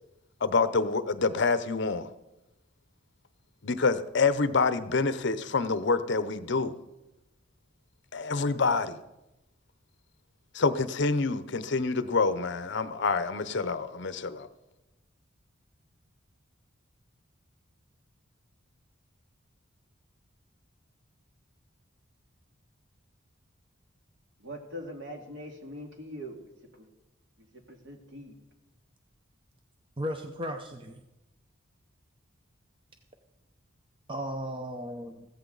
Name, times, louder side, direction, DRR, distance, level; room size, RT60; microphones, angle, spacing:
voice 1, 0.4-2.1 3.6-6.7 8.1-9.0 10.5-14.5, left 4 dB, 60° left, 0.7 m, -27 dB
voice 2, 24.4-26.4 26.8-26.9 27.5-28.3, equal, 60° right, 2.3 m, -42 dB
voice 3, 30.0-31.0 34.1-35.3, equal, 25° right, 0.7 m, -35 dB
15.0 x 14.0 x 3.9 m
head